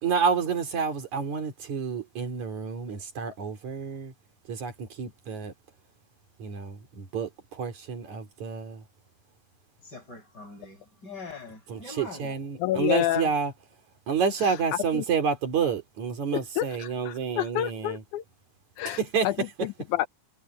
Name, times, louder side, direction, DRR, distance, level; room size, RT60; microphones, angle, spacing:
voice 1, 0.0-4.1 4.5-5.5 6.4-8.8 12.0-13.5 14.1-18.0 18.9-19.3, right 6 dB, 70° right, 4.4 m, -29 dB
voice 2, 9.8-12.3, left 3 dB, 30° left, 8.5 m, -43 dB
voice 3, 12.6-13.3 14.4-14.6 14.9-15.1 16.3-18.2 18.8-20.1, left 14 dB, 85° left, 2.2 m, -29 dB
omnidirectional pair, 3.4 m